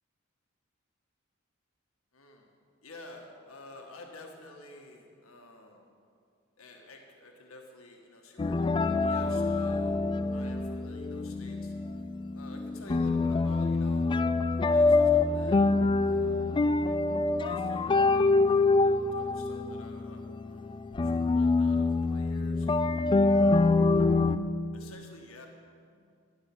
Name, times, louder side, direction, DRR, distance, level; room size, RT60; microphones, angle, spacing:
voice 1, 2.1-2.5 2.8-5.9 6.6-10.0 10.3-11.7 12.3-14.2 14.5-15.7 16.0-16.9 17.4-22.7 23.3-23.9 24.7-25.5, left 2 dB, 85° left, 1 dB, 1.8 m, -50 dB
sound 1, 8.4-24.4, left 3 dB, 25° left, 0.3 m, -25 dB
12.5 x 11.0 x 6.1 m, 2.3 s
head